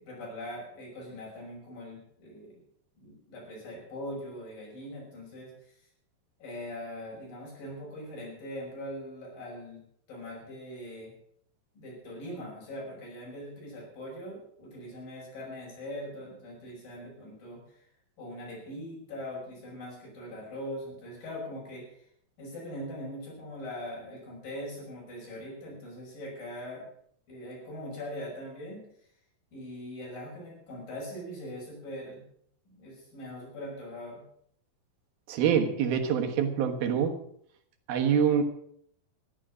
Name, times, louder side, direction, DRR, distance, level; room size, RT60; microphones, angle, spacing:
voice 1, 0.0-2.6 3.0-5.8 6.4-9.8 10.1-11.1 11.7-17.9 18.2-22.1 22.4-26.9 27.3-28.8 29.5-32.2 32.7-34.2, left 1 dB, 70° left, -3 dB, 7.7 m, -41 dB
voice 2, 35.3-37.2 37.9-38.4, right 8 dB, 90° right, 5 dB, 3.3 m, -25 dB
13.5 x 11.5 x 6.3 m, 0.67 s
omnidirectional pair, 4.1 m